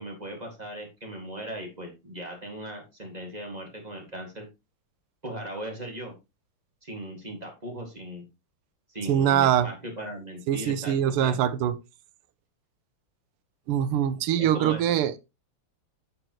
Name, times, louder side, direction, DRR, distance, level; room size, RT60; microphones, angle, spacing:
voice 1, 0.0-4.5 5.2-6.2 6.8-8.3 8.9-11.4 14.4-15.1, equal, 20° right, 1.7 m, -38 dB
voice 2, 9.1-9.7 10.5-11.7 13.7-15.2, right 10 dB, 90° right, 1.6 m, -23 dB
7.9 x 7.6 x 3.0 m
omnidirectional pair, 2.4 m